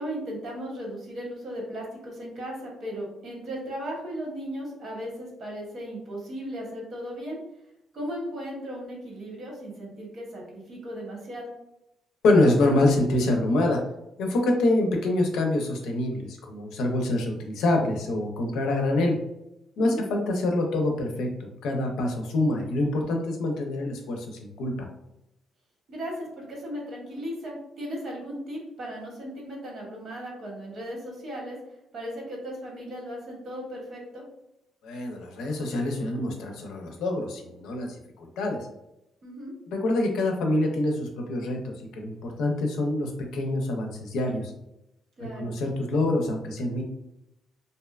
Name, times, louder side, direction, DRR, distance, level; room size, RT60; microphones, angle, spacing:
voice 1, 0.0-7.4 7.9-11.5 19.8-20.1 25.9-31.6 31.9-34.2 39.2-39.5 45.2-45.5, equal, 60° right, -2 dB, 1.0 m, -36 dB
voice 2, 12.2-13.8 14.2-19.2 19.8-24.9 34.8-38.6 39.7-44.5 45.4-46.8, left 2 dB, 85° left, 2 dB, 0.5 m, -26 dB
2.6 x 2.2 x 2.3 m, 0.86 s
cardioid pair, 90°, 0 cm